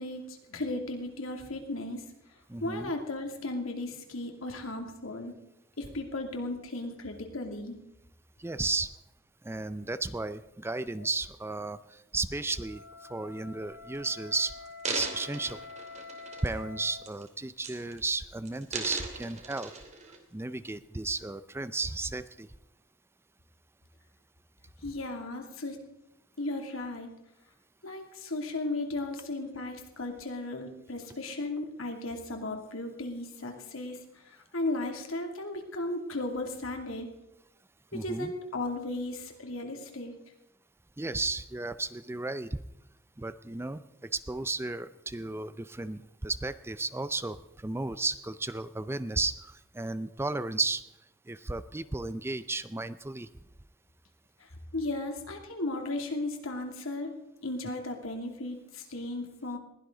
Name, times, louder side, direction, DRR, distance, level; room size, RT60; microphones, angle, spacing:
voice 1, 0.0-2.0 2.6-5.3 5.8-7.8 24.8-25.8 26.4-27.1 27.8-37.1 37.9-40.1 54.4-57.1 57.4-59.6, left 2 dB, 80° left, 3 dB, 2.7 m, -35 dB
voice 2, 2.5-2.9 8.4-8.9 9.4-12.8 13.1-14.5 14.9-15.6 16.4-19.7 20.3-22.5 37.9-38.3 41.0-42.6 43.2-50.8 51.3-53.3, right 3 dB, 10° right, 13 dB, 0.5 m, -34 dB
Wind instrument woodwind instrument, 12.4-17.1, left 4 dB, 55° right, 3.8 m, -47 dB
sound 1, 13.8-14.0 14.6-16.7 17.0-17.3 17.6-18.1 18.5-20.2 20.8-20.9, right 4 dB, 35° right, 2.6 m, -38 dB
21.0 x 16.5 x 3.9 m, 0.87 s
head